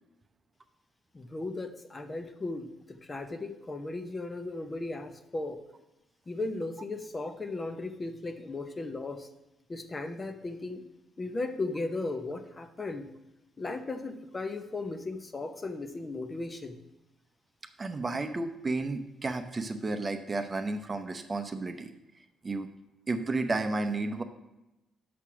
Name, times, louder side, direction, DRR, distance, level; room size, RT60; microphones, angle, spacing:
voice 1, 1.1-5.6 6.3-9.3 9.7-10.9 11.2-13.1 13.6-16.8, left 2 dB, 25° left, 8 dB, 0.8 m, -36 dB
voice 2, 17.8-21.9 22.4-22.7 23.1-24.2, right 3 dB, 30° right, 7 dB, 0.7 m, -32 dB
6.6 x 6.0 x 6.1 m, 0.96 s
cardioid pair, 90°, 0 cm